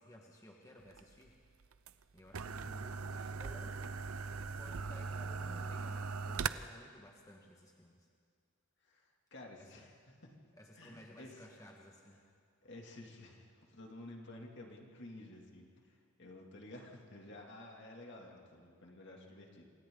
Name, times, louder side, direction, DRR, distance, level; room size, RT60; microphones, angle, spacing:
voice 1, 0.0-1.4 2.1-3.8 4.6-8.1 9.6-9.8 10.6-12.2, equal, 15° left, -1 dB, 1.6 m, -56 dB
sound 1, 0.9-6.5, right 5 dB, 85° right, 0.7 m, -40 dB
voice 2, 8.8-10.3 10.8-11.5 12.6-19.7, left 1 dB, 55° left, 0 dB, 2.8 m, -52 dB
27.5 x 27.0 x 4.0 m, 2.1 s
head